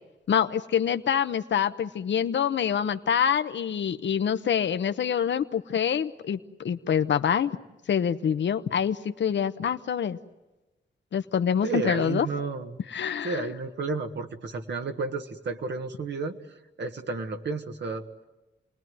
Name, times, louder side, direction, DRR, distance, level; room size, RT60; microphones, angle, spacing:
voice 1, 0.3-6.4 6.6-7.5 7.9-10.2 11.1-12.3 12.9-13.5, left 8 dB, 85° left, 9 dB, 1.0 m, -26 dB
voice 2, 11.6-12.8 13.2-18.0, right 4 dB, 70° right, 5 dB, 1.6 m, -32 dB
29.5 x 20.5 x 9.4 m, 1.1 s
wide cardioid pair, 145°, 18 cm